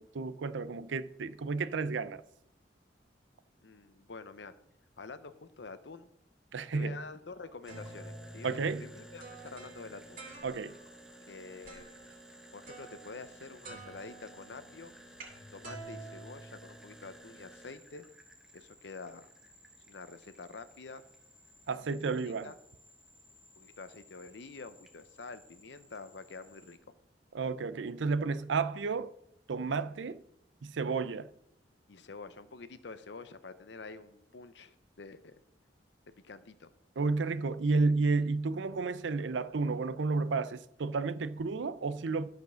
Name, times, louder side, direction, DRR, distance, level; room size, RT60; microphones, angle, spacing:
voice 1, 0.0-2.2 6.5-7.0 8.4-8.9 10.4-10.7 21.7-22.5 27.3-29.1 29.5-30.2 30.6-31.3 37.0-42.3, right 4 dB, 85° right, 0.5 m, -32 dB
voice 2, 3.6-4.5 5.0-6.1 6.7-10.2 11.3-11.9 12.5-14.9 15.5-18.0 18.5-19.3 19.9-21.0 22.0-22.5 23.6-26.8 31.9-35.3 36.2-36.7, left 4 dB, 70° left, 0.8 m, -47 dB
sound 1, 7.4-10.9 11.7-12.1 12.7-13.4 13.6-17.1, right 2 dB, 50° right, 2.6 m, -49 dB
sound 2, 7.6-26.8, equal, 5° right, 1.1 m, -56 dB
12.0 x 5.2 x 6.2 m
head